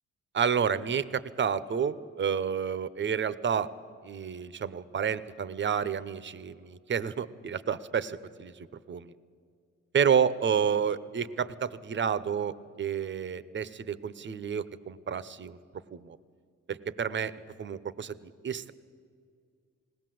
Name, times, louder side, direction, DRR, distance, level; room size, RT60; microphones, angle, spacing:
voice 1, 0.3-3.7 4.0-9.1 9.9-15.6 15.9-16.2 16.7-17.3 17.6-18.7, right 7 dB, 40° right, 15 dB, 0.9 m, -30 dB
20.0 x 18.0 x 7.8 m, 2.2 s
cardioid pair, 90°, 30 cm